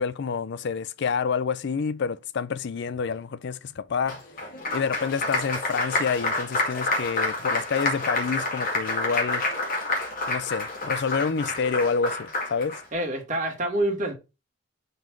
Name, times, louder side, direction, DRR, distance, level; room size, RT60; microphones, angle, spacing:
voice 1, 0.0-4.2 4.7-9.4 10.3-12.8, left 5 dB, 65° left, 0.5 m, -28 dB
Applause, 4.1-12.8, left 2 dB, 50° left, 2.2 m, -28 dB
voice 2, 12.9-14.1, right 1 dB, 40° right, 2.1 m, -26 dB
5.3 x 3.8 x 5.9 m
head